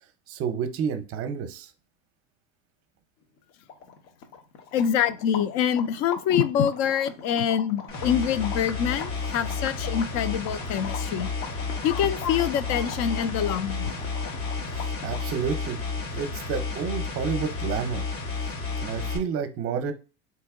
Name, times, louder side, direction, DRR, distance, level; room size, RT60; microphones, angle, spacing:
voice 1, 0.3-1.7 14.7-15.8 16.1-18.0 18.8-19.9, right 7 dB, 35° right, 8 dB, 0.7 m, -30 dB
sound 1, 3.4-3.5 3.6-15.4, left 6 dB, 75° left, 1.1 m, -41 dB
voice 2, 4.7-11.3 11.8-13.9, left 9 dB, 45° left, 14 dB, 0.5 m, -25 dB
sound 2, 7.9-19.2, left 4 dB, 90° left, 1.6 m, -32 dB
2.9 x 2.8 x 3.6 m, 0.33 s
supercardioid pair, 130°, 37 cm